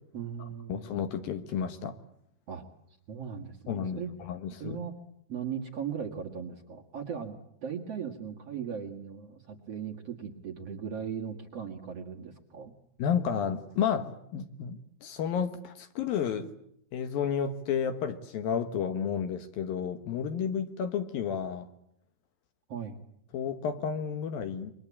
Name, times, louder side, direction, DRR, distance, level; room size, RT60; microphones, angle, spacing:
voice 1, 0.1-1.0 2.5-2.6 3.1-4.1 4.6-4.9 5.3-7.4 7.6-12.7 22.7-23.0, right 7 dB, 45° right, 1 dB, 2.3 m, -38 dB
voice 2, 0.7-2.0 3.7-4.0 4.3-4.8 13.0-16.5 16.9-21.7 23.3-24.7, left 7 dB, 65° left, 9 dB, 2.8 m, -31 dB
29.0 x 24.0 x 8.6 m, 0.73 s
omnidirectional pair, 4.9 m